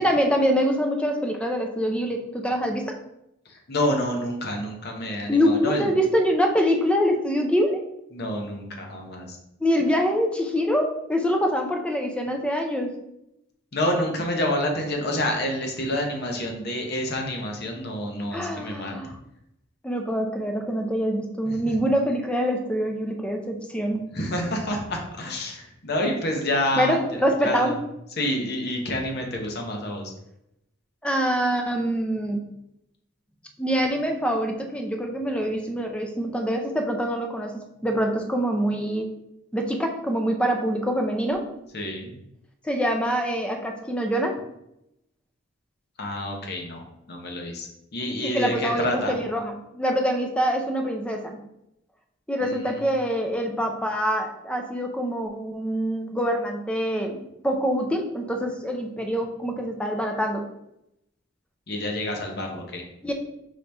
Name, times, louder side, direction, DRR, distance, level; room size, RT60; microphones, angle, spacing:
voice 1, 0.0-3.0 5.3-7.8 9.6-12.9 18.3-19.1 19.8-24.0 26.8-27.8 31.0-32.5 33.6-39.1 39.5-41.5 42.6-44.4 48.1-51.4 52.3-60.4 63.0-63.1, equal, 5° left, 3 dB, 0.5 m, -25 dB
voice 2, 3.5-5.9 8.1-9.4 13.7-18.9 21.4-21.8 24.1-27.8 28.2-30.1 41.7-42.1 46.0-49.1 52.4-52.9 61.7-62.8, left 1 dB, 55° left, 2 dB, 0.8 m, -28 dB
4.9 x 2.8 x 3.4 m, 0.83 s
head